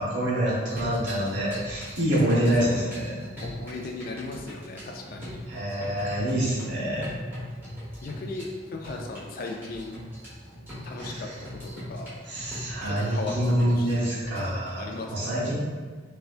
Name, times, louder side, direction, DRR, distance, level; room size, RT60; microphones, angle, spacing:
voice 1, 0.0-3.1 5.5-7.1 11.0-11.4 12.3-15.5, right 1 dB, 65° right, -6 dB, 1.0 m, -26 dB
sound 1, 0.7-14.7, equal, 10° right, 1.1 m, -39 dB
voice 2, 3.4-5.4 8.0-8.5 8.7-10.0 10.8-11.3 11.6-12.1 12.8-13.4 13.8-14.2 14.8-15.1, left 3 dB, 50° left, 2 dB, 0.3 m, -37 dB
4.3 x 2.2 x 2.4 m, 1.5 s
head